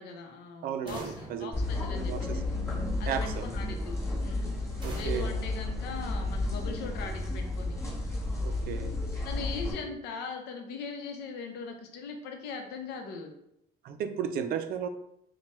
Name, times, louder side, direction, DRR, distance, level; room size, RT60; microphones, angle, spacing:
voice 1, 0.0-2.4 3.0-4.5 4.9-7.8 9.2-13.3, left 4 dB, 80° left, 4 dB, 0.7 m, -40 dB
voice 2, 0.6-1.5 2.1-2.4 3.1-3.5 4.8-5.3 8.4-8.9 13.8-14.9, right 8 dB, 65° right, 9 dB, 0.4 m, -34 dB
sound 1, 0.9-2.7 4.8-6.6, right 1 dB, 25° right, 1.0 m, -46 dB
sound 2, 1.5-9.7, left 2 dB, 15° left, 1.1 m, -32 dB
4.4 x 2.2 x 3.0 m, 0.77 s
cardioid pair, 110°, 17 cm